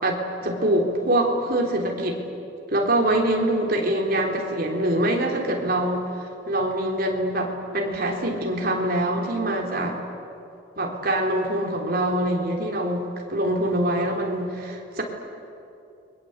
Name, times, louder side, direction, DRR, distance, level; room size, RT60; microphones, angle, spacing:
voice 1, 0.0-2.2 2.7-6.1 6.5-10.0 10.8-15.0, right 1 dB, 50° right, 1 dB, 3.7 m, -24 dB
29.0 x 22.5 x 8.2 m, 2.7 s
head